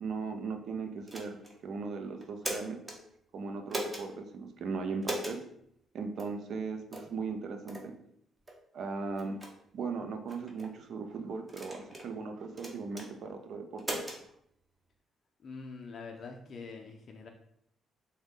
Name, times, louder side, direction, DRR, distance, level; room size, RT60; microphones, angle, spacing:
voice 1, 0.0-2.8 3.3-5.4 5.9-7.9 8.7-9.4 9.7-14.1, right 4 dB, 65° right, 6 dB, 0.4 m, -38 dB
sound 1, 1.1-1.6 2.2-3.0 3.7-4.1 5.0-5.4 6.2-6.3 6.9-7.1 7.7-7.9 8.5-8.6 9.2-9.5 10.3-10.7 11.5-12.1 12.6-13.1 13.8-14.2, right 1 dB, 20° right, 0.7 m, -38 dB
voice 2, 15.4-17.3, left 4 dB, 55° left, 3 dB, 0.4 m, -44 dB
3.5 x 2.1 x 3.6 m, 0.72 s
cardioid pair, 90°, 0 cm